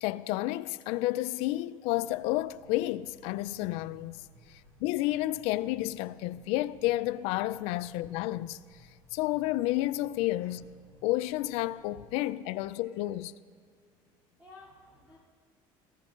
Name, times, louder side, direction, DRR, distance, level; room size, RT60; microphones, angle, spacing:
voice 1, 0.0-4.2 4.8-8.6 9.1-10.6 11.0-13.3, left 16 dB, 80° left, 0.4 m, -31 dB
sound 1, 1.9-12.0, right 1 dB, 70° right, 3.0 m, -59 dB
voice 2, 12.6-13.0 14.4-15.2, left 2 dB, 15° right, 2.8 m, -56 dB
18.5 x 15.0 x 2.5 m
cardioid pair, 135°, 10 cm